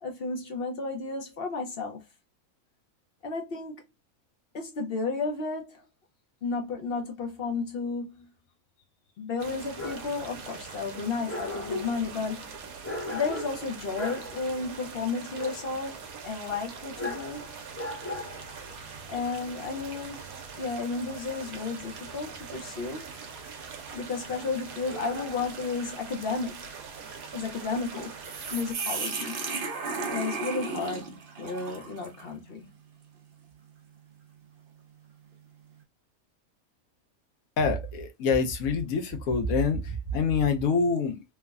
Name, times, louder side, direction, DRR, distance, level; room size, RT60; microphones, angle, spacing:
voice 1, 0.0-2.0 3.2-3.8 4.5-5.9 6.4-8.3 9.2-12.5 13.1-16.0 16.2-17.5 19.1-20.2 20.6-23.1 23.9-26.7 27.3-28.2 28.4-29.4 30.1-32.7, left 4 dB, 55° left, 0.7 m, -33 dB
sound 1, 9.4-28.7, right 5 dB, 80° right, 1.1 m, -43 dB
Dog, 9.5-25.5, left 2 dB, 10° left, 0.7 m, -41 dB
sound 2, 17.4-17.8 18.4-18.5 19.4-19.7 20.3-32.3, right 4 dB, 60° right, 0.6 m, -38 dB
voice 2, 37.6-41.2, left 4 dB, 75° left, 1.1 m, -26 dB
3.2 x 2.1 x 2.3 m
omnidirectional pair, 1.5 m